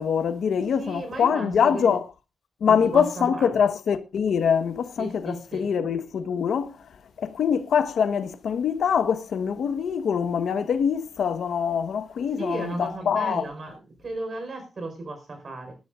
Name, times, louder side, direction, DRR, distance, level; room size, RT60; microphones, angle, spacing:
voice 1, 0.0-2.0 2.6-6.8 7.2-13.4, left 7 dB, 75° left, 1.3 m, -24 dB
voice 2, 0.8-2.0 2.7-3.5 5.0-5.7 12.4-15.8, right 2 dB, 40° right, 4.9 m, -34 dB
19.5 x 12.0 x 2.6 m
wide cardioid pair, 145°, 0 cm